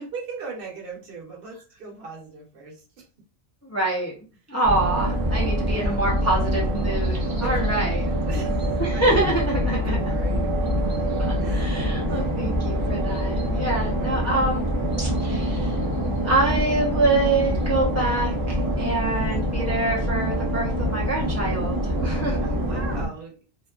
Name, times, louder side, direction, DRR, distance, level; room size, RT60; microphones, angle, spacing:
voice 1, 0.1-3.1 5.7-6.0 7.4-10.8 11.4-12.3 13.7-14.1 22.4-23.3, right 4 dB, 65° right, 0 dB, 0.9 m, -40 dB
voice 2, 3.6-4.1 4.5-8.1 8.8-10.2 11.2-14.7 15.0-15.8 16.2-22.4, right 2 dB, 25° left, -3 dB, 0.4 m, -26 dB
sound 1, 4.6-23.0, equal, 25° right, 0.6 m, -25 dB
2.5 x 2.3 x 2.2 m, 0.36 s
omnidirectional pair, 1.1 m